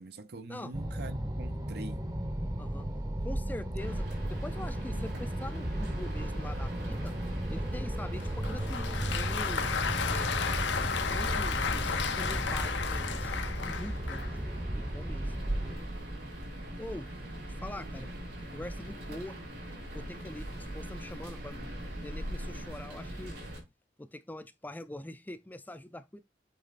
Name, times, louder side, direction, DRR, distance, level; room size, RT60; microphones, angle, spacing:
voice 1, 0.0-2.1 17.8-18.0, right 2 dB, 60° right, 0.6 m, -44 dB
sound 1, 0.7-15.7, right 1 dB, 20° right, 0.8 m, -35 dB
voice 2, 3.2-7.2 7.5-10.4 10.7-13.3 13.6-14.4 14.7-15.3 16.8-17.1 17.6-18.1 18.5-19.4 19.9-21.7 22.0-23.3 24.0-26.2, left 1 dB, 10° left, 0.4 m, -43 dB
sound 2, 3.8-23.6, right 1 dB, 75° right, 4.8 m, -41 dB
Applause, 8.2-14.4, left 6 dB, 80° left, 0.7 m, -33 dB
8.3 x 3.1 x 4.1 m
head